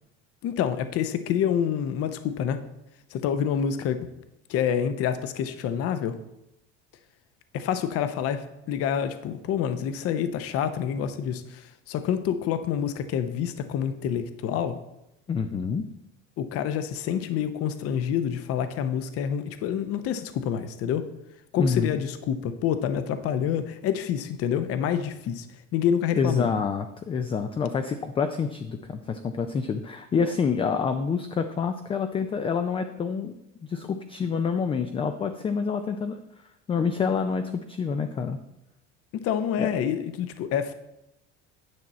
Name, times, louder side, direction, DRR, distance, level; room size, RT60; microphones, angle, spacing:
voice 1, 0.4-2.6 3.1-4.0 4.5-6.2 7.5-14.8 16.4-21.0 21.5-25.5 25.7-26.5 39.1-40.7, left 8 dB, 45° left, 10 dB, 0.7 m, -27 dB
voice 2, 15.3-15.8 21.6-21.9 26.2-33.4 33.6-36.2 36.7-38.4 39.6-39.7, left 5 dB, 20° left, 8 dB, 0.3 m, -27 dB
9.6 x 6.0 x 4.2 m, 0.89 s
cardioid pair, 140°, 32 cm